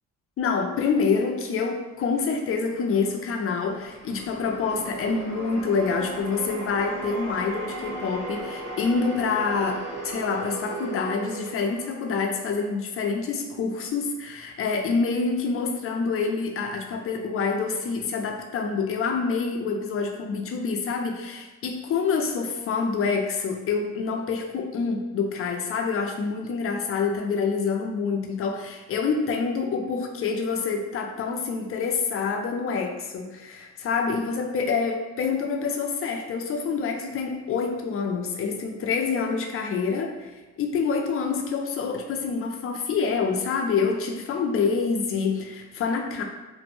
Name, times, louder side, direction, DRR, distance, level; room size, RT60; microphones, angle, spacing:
voice 1, 0.4-46.2, left 5 dB, 50° left, 3 dB, 0.5 m, -27 dB
sound 1, 2.7-13.0, right 2 dB, 55° right, 1.4 m, -37 dB
2.6 x 2.1 x 3.0 m, 1.2 s
cardioid pair, 90°, 30 cm